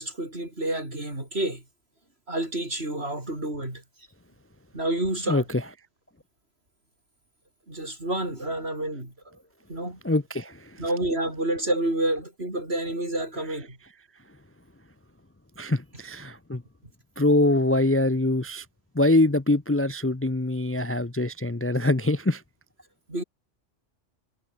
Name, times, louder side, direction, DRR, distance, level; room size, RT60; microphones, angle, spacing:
voice 1, 0.0-1.6 2.3-3.8 4.7-5.4 7.7-9.4 9.7-10.0 10.8-13.8 23.1-23.2, right 1 dB, 60° right, 7.6 m, -29 dB
voice 2, 5.3-5.6 10.0-10.8 15.6-16.6 17.2-18.7 18.9-22.4, left 2 dB, 15° left, 0.8 m, -24 dB
omnidirectional pair, 1.2 m